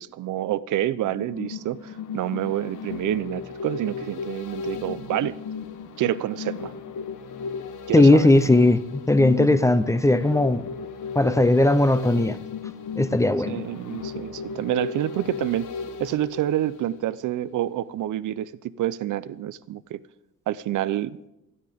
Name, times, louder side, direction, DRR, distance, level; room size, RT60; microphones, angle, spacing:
voice 1, 0.0-5.4 6.0-6.7 7.9-8.3 13.5-15.7 16.0-18.5 18.8-20.0 20.5-21.2, right 12 dB, 85° right, 0.7 m, -28 dB
sound 1, 1.0-17.3 17.6-17.7, left 6 dB, 80° left, 1.2 m, -35 dB
voice 2, 7.9-8.8 9.1-10.6 11.1-12.4 12.9-13.6, left 2 dB, 10° left, 0.6 m, -18 dB
28.0 x 9.7 x 3.6 m
cardioid pair, 140°, 30 cm